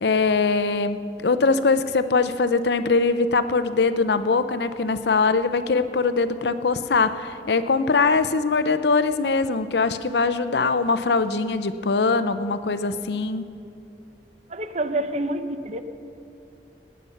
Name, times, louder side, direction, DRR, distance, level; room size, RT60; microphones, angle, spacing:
voice 1, 0.0-13.4, left 4 dB, 70° left, 11 dB, 0.6 m, -22 dB
voice 2, 14.5-15.8, right 1 dB, 40° right, 9 dB, 0.7 m, -27 dB
18.0 x 9.5 x 5.8 m, 2.6 s
head